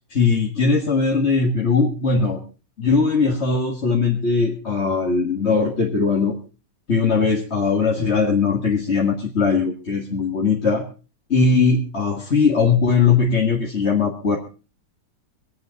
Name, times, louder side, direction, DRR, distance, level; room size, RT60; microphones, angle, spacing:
voice 1, 0.1-2.4 2.8-6.3 6.9-10.9 11.3-14.4, left 4 dB, 35° left, -1 dB, 2.2 m, -19 dB
25.5 x 9.7 x 3.8 m, 0.35 s
omnidirectional pair, 2.1 m